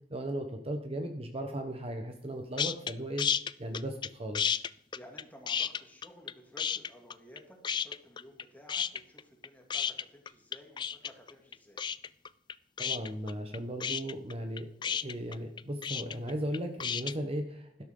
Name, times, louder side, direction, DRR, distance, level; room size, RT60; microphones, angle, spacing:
voice 1, 0.1-3.2 3.6-4.4 12.8-17.8, right 1 dB, 35° right, 5 dB, 1.1 m, -37 dB
sound 1, 2.6-2.9 3.2-4.1 4.3-6.3 6.6-7.4 7.6-8.4 8.7-17.1, left 8 dB, 25° left, 0.3 m, -32 dB
voice 2, 4.9-11.8, equal, 10° left, 1 dB, 2.6 m, -54 dB
12.0 x 11.5 x 3.8 m, 0.72 s
head